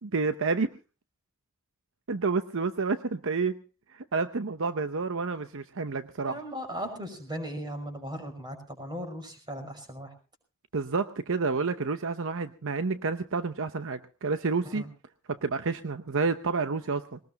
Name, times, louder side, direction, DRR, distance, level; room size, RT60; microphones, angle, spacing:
voice 1, 0.0-0.7 2.1-3.6 3.9-6.4 10.7-14.8 15.3-17.2, right 4 dB, 65° right, 10 dB, 0.8 m, -29 dB
voice 2, 6.2-10.1 14.6-14.9, equal, 20° right, 5 dB, 5.7 m, -37 dB
21.5 x 19.0 x 2.8 m, 0.34 s
head